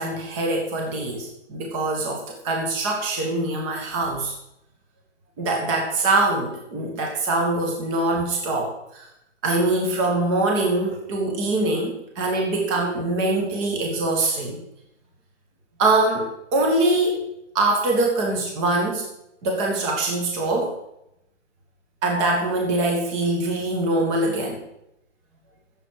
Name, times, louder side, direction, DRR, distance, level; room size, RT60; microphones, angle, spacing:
voice 1, 0.0-4.3 5.4-9.1 9.4-14.6 15.8-17.2 17.5-19.0 19.4-20.8 22.0-24.6, right 2 dB, 25° right, 1 dB, 1.9 m, -23 dB
15.0 x 7.8 x 4.8 m, 0.82 s
hypercardioid pair, 140°, 38 cm